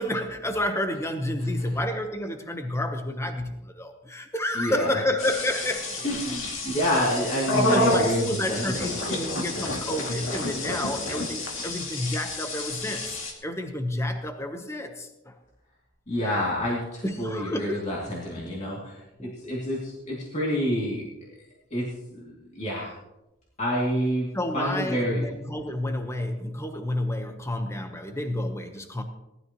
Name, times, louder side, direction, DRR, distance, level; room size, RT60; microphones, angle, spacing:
voice 1, 0.0-6.4 7.0-7.1 7.6-15.3 17.0-17.8 18.4-18.5 19.2-19.3 24.3-29.0, left 1 dB, 15° left, 6 dB, 1.0 m, -30 dB
voice 2, 4.5-5.0 6.0-8.9 16.1-21.3 21.7-22.9 23.6-25.2, equal, 35° left, -5 dB, 2.6 m, -28 dB
sound 1, 5.2-13.3, left 2 dB, 75° left, 2.4 m, -29 dB
18.0 x 12.5 x 3.0 m, 0.93 s
head